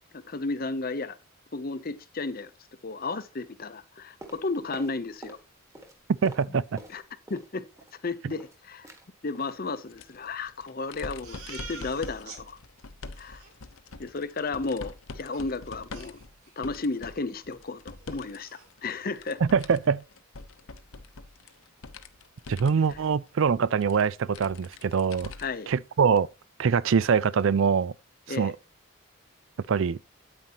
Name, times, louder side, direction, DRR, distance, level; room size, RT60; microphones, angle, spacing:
voice 1, 0.1-1.2 1.5-2.5 2.8-5.4 6.9-7.0 7.3-7.6 8.0-8.9 9.2-12.6 13.2-13.4 14.0-16.2 16.6-19.4 22.9-23.0 25.4-25.7 28.3-28.5, left 3 dB, 40° left, 0.7 m, -33 dB
sound 1, 4.2-5.5 5.7-7.5 7.8-8.6 8.8-9.1 9.4-9.6 9.9-10.1 10.4-10.5, right 1 dB, 15° right, 1.6 m, -47 dB
voice 2, 6.2-6.6 19.4-20.0 22.5-25.3 25.7-26.3 26.6-27.9 28.4-28.5 29.7-30.0, right 6 dB, 60° right, 0.4 m, -23 dB
sound 2, 9.9-18.4 18.7-25.7 26.1-26.2 27.4-27.5, left 3 dB, 70° left, 0.8 m, -44 dB
Crying sobbing, 11.2-12.4 12.8-12.9 13.1-13.5 15.3-15.4 15.9-16.7 17.0-17.2 17.6-17.7 18.0-18.7, right 4 dB, 85° right, 3.0 m, -46 dB
9.4 x 8.8 x 2.9 m
head